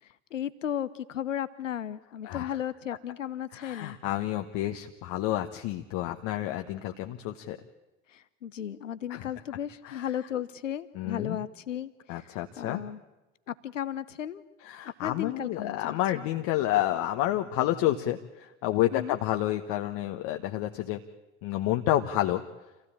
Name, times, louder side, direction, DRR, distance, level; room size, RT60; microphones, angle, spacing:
voice 1, 0.3-4.0 8.1-12.2 12.6-13.0 13.5-14.4 15.0-16.0 18.9-19.2, left 10 dB, 90° left, 15 dB, 0.9 m, -35 dB
voice 2, 2.2-2.6 3.5-7.6 9.1-9.3 9.8-10.1 10.9-11.4 12.1-12.8 14.6-21.0 21.4-22.4, left 14 dB, 60° left, 5 dB, 1.3 m, -29 dB
26.5 x 16.0 x 8.8 m, 1.1 s
hypercardioid pair, 70°, 37 cm